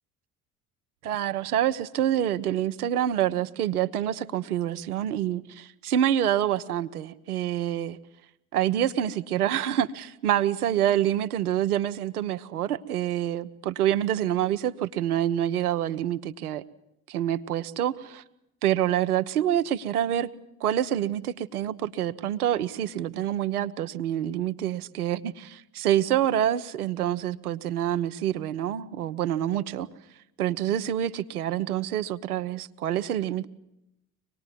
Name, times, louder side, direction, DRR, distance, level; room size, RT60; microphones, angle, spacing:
voice 1, 1.0-8.0 8.5-16.6 17.1-18.2 18.6-20.3 20.6-29.9 30.4-33.4, right 11 dB, 80° right, 11 dB, 0.9 m, -27 dB
25.0 x 19.5 x 9.2 m, 0.85 s
figure-of-eight pair, 55°, 44 cm